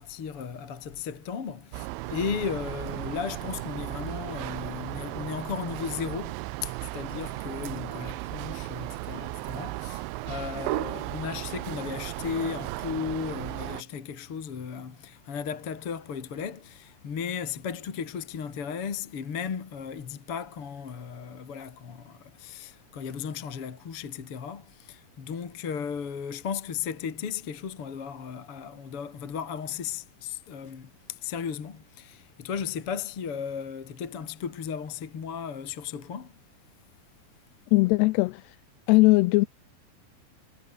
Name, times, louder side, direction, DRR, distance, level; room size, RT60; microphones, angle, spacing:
voice 1, 0.0-36.3, left 7 dB, 40° left, 2.6 m, -35 dB
sound 1, 1.7-13.8, right 22 dB, 85° right, 3.0 m, -35 dB
voice 2, 37.7-38.4 38.9-39.5, left 23 dB, 85° left, 2.4 m, -19 dB
omnidirectional pair, 5.2 m